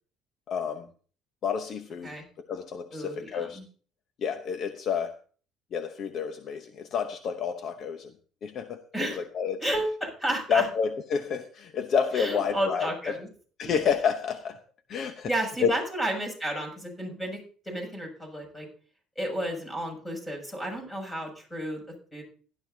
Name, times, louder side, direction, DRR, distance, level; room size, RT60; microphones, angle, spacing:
voice 1, 0.5-0.9 1.4-3.6 4.2-5.2 5.7-8.1 8.4-9.7 10.5-13.2 13.6-14.6 14.9-15.3 15.6-15.7, left 7 dB, 50° left, 8 dB, 0.9 m, -29 dB
voice 2, 2.9-3.6 8.9-9.2 9.6-10.7 12.1-13.3 13.6-13.8 15.3-17.4 17.7-18.7 19.2-21.8 22.1-22.2, right 1 dB, 15° left, 2 dB, 7.0 m, -32 dB
16.5 x 12.0 x 2.8 m, 0.41 s
cardioid pair, 120°, 0 cm